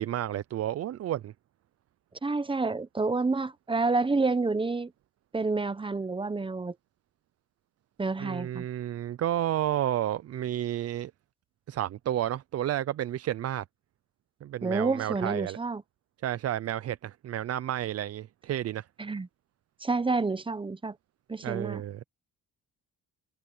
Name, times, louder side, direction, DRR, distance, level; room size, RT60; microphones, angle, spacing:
voice 1, 0.0-1.3 8.2-11.1 11.7-13.6 14.4-15.6 16.2-18.9 21.4-22.0, right 12 dB, 50° right, 0.5 m, -31 dB
voice 2, 2.2-4.9 5.3-6.7 8.0-8.6 14.6-15.8 19.0-19.3 19.8-20.9 21.3-21.8, right 3 dB, 15° right, 0.8 m, -29 dB
cardioid pair, 135°, 34 cm